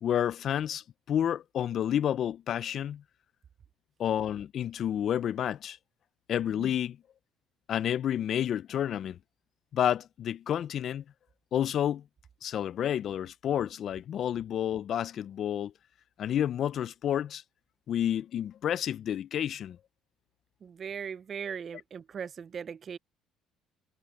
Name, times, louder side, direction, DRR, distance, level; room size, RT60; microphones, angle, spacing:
voice 1, 0.0-3.0 4.0-5.8 6.3-7.0 7.7-9.2 9.7-11.0 11.5-12.0 12.4-15.7 16.2-17.4 17.9-19.8, left 10 dB, 45° left, 0.3 m, -30 dB
voice 2, 20.6-23.0, right 7 dB, 35° right, 0.4 m, -39 dB
cardioid pair, 145°, 0 cm